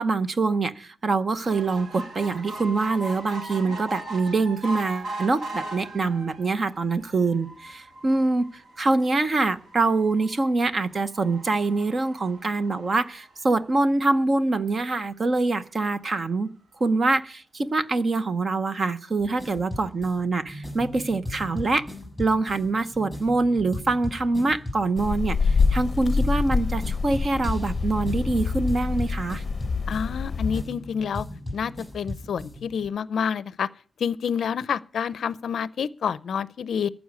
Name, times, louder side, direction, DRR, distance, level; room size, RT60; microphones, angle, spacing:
voice 1, 0.0-16.5 16.8-21.9 22.2-29.4, right 3 dB, 30° right, 0.7 m, -24 dB
sound 1, 1.4-14.0 14.6-14.7 15.0-15.1 15.3-15.4, right 2 dB, 55° right, 2.3 m, -40 dB
sound 2, 19.2-32.9, left 1 dB, 5° right, 7.0 m, -37 dB
sound 3, 25.0-30.6, left 4 dB, 30° left, 0.8 m, -26 dB
voice 2, 29.9-31.3 31.5-33.7 34.0-36.9, left 7 dB, 60° left, 0.5 m, -28 dB
14.5 x 6.1 x 9.6 m
wide cardioid pair, 175°, 0 cm